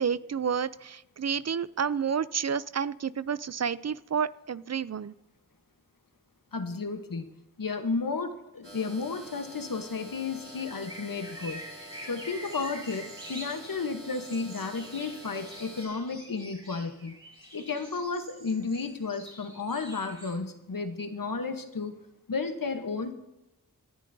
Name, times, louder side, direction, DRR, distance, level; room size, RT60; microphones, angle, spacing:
voice 1, 0.0-5.1, right 7 dB, 50° right, 18 dB, 0.4 m, -30 dB
voice 2, 6.5-7.3 7.6-11.6 12.1-17.1 17.5-21.9 22.3-23.1, left 4 dB, 80° left, 7 dB, 1.1 m, -33 dB
sound 1, 8.6-15.9, equal, 35° right, 4.0 m, -47 dB
sound 2, 10.4-20.4, right 1 dB, 15° right, 4.9 m, -46 dB
17.5 x 11.0 x 2.7 m, 0.94 s
wide cardioid pair, 45°, 33 cm